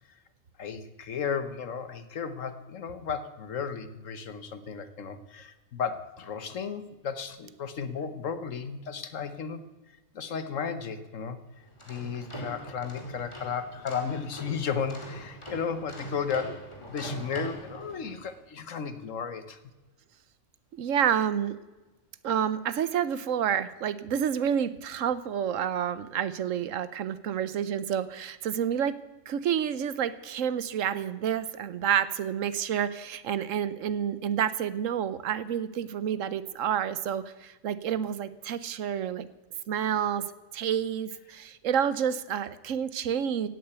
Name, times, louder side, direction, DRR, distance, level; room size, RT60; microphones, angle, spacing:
voice 1, 0.6-9.6 9.9-11.4 11.9-19.6, left 6 dB, 85° left, 11 dB, 1.5 m, -34 dB
sound 1, 11.6-18.3, right 1 dB, 20° left, 2.5 m, -42 dB
voice 2, 20.8-21.6 22.2-29.0 29.3-39.3 39.7-40.2 40.5-43.5, right 9 dB, 90° right, 15 dB, 1.2 m, -29 dB
16.5 x 8.8 x 8.1 m, 1.2 s
omnidirectional pair, 1.3 m